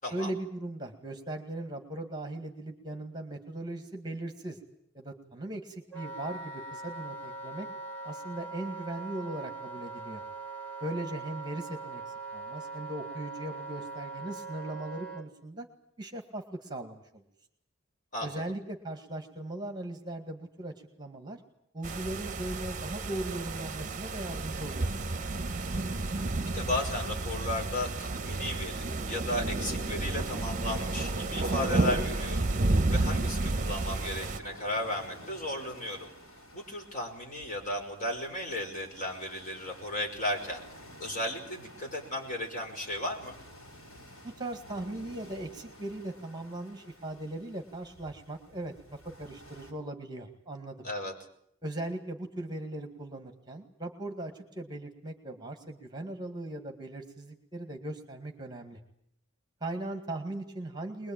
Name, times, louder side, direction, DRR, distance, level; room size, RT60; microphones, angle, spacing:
voice 1, 0.1-4.6 4.9-7.7 8.0-10.2 10.8-15.7 16.0-17.2 18.2-21.4 21.7-25.3 44.2-50.9 51.6-58.8 59.6-61.1, right 1 dB, 20° right, 5 dB, 2.0 m, -39 dB
Wind instrument woodwind instrument, 5.9-15.3, right 3 dB, 5° left, 3.2 m, -41 dB
voice 2, 18.1-18.4 26.4-32.5 32.9-36.1 36.5-40.6 41.0-43.4 50.8-51.1, left 1 dB, 35° left, 1 dB, 5.5 m, -35 dB
sound 1, 21.8-34.4, right 2 dB, 35° right, 1.0 m, -31 dB
sound 2, 32.6-49.7, equal, 75° left, 6.3 m, -52 dB
22.5 x 21.5 x 9.0 m, 0.73 s
head